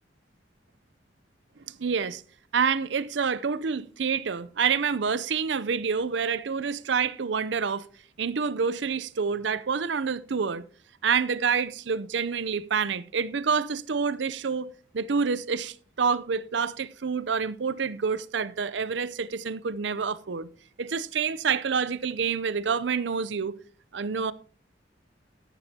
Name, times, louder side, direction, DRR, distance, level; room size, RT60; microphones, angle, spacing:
voice 1, 1.8-2.2 2.5-7.9 8.2-10.6 11.0-14.7 14.9-20.5 20.8-23.5 23.9-24.3, right 6 dB, 75° right, 0.6 m, -27 dB
13.0 x 11.0 x 2.8 m
head